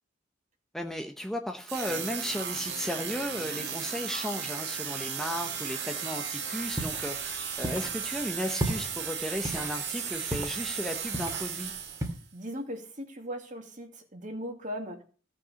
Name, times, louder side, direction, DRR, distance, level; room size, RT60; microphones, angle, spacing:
voice 1, 0.7-11.7, equal, ahead, 3 dB, 0.8 m, -35 dB
sound 1, 1.7-12.2, right 7 dB, 55° right, 2.0 m, -35 dB
sound 2, 6.6-12.1, right 1 dB, 15° right, 2.2 m, -37 dB
voice 2, 12.3-15.0, equal, 40° right, 3 dB, 2.4 m, -38 dB
16.0 x 5.8 x 6.9 m, 0.41 s
head